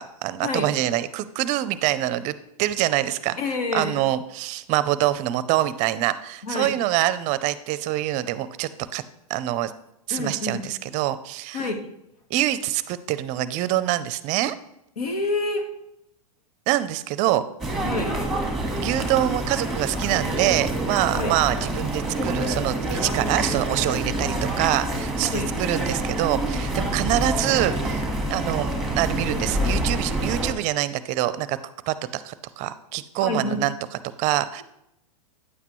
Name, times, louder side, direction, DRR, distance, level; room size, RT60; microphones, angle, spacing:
voice 1, 0.0-3.4 3.7-9.0 9.3-9.7 10.1-11.7 12.3-14.6 16.7-17.4 18.8-28.0 28.3-28.7 29.0-31.6 31.9-33.7 34.2-34.6, right 14 dB, 40° right, 15 dB, 0.5 m, -25 dB
voice 2, 3.4-3.9 6.4-6.7 10.1-10.7 11.5-11.8 15.0-15.7 17.8-18.1 21.1-21.3 25.2-25.5 33.2-33.6, left 2 dB, 80° left, 5 dB, 1.5 m, -27 dB
sound 1, 17.6-30.5, right 1 dB, ahead, 1.5 m, -27 dB
9.5 x 8.0 x 3.1 m, 0.82 s
hypercardioid pair, 115°, 19 cm